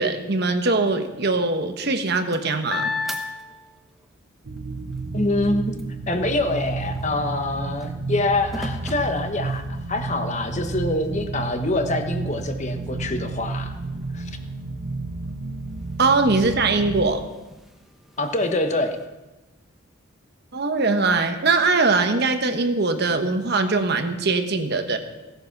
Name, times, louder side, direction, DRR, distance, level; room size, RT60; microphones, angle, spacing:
voice 1, 0.0-2.9 16.0-17.2 20.5-25.0, right 3 dB, 50° right, 7 dB, 1.1 m, -21 dB
sound 1, 1.8-4.1 4.6-10.0 10.6-10.7 11.1-19.1, left 3 dB, ahead, 1.0 m, -38 dB
sound 2, 4.4-17.0, right 3 dB, 75° right, 0.9 m, -31 dB
voice 2, 5.1-5.7 6.1-13.7 14.1-14.3 18.2-19.0, left 2 dB, 35° left, 6 dB, 1.1 m, -25 dB
16.5 x 9.2 x 5.9 m, 1.1 s
head